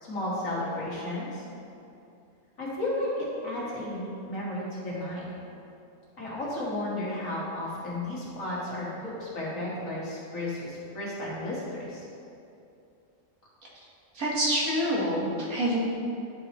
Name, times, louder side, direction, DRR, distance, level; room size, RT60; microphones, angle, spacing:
voice 1, 0.0-1.4 2.6-5.3 6.2-12.1, left 1 dB, 70° left, -7 dB, 2.1 m, -33 dB
voice 2, 14.1-15.8, equal, 85° right, -5 dB, 1.8 m, -26 dB
10.5 x 4.8 x 3.0 m, 2.6 s
omnidirectional pair, 1.5 m